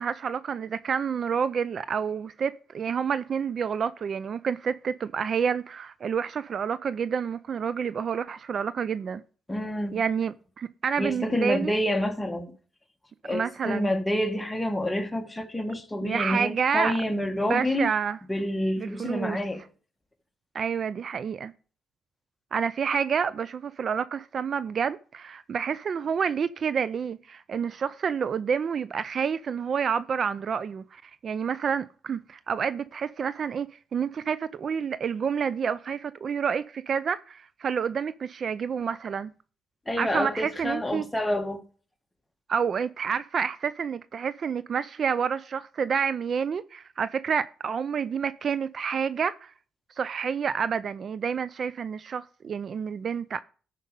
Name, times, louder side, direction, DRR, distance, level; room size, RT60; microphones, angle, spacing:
voice 1, 0.0-9.2 9.9-11.7 13.3-13.9 16.0-18.2 18.8-19.4 20.5-21.5 22.5-39.3 40.0-41.0 42.5-49.5 50.0-53.4, right 6 dB, 50° right, 0.4 m, -29 dB
voice 2, 9.5-10.0 11.0-12.5 13.2-17.9 18.3-19.6 39.9-41.6, left 1 dB, 10° left, 1.5 m, -28 dB
13.0 x 5.2 x 5.2 m
cardioid pair, 90°, 0 cm